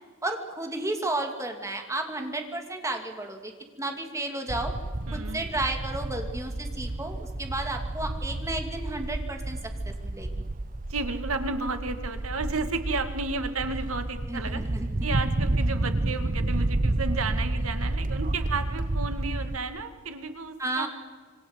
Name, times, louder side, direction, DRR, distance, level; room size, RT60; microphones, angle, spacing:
voice 1, 0.2-3.5 3.8-4.7 5.1-9.6 9.8-10.4 14.3-14.9 20.6-20.9, right 2 dB, 15° right, 4 dB, 3.0 m, -32 dB
sound 1, 4.5-19.6, right 2 dB, 40° right, 0.9 m, -30 dB
voice 2, 5.1-5.5 10.9-14.6 15.0-20.9, right 3 dB, 85° right, 8 dB, 2.2 m, -32 dB
27.0 x 24.0 x 8.2 m, 1.5 s
head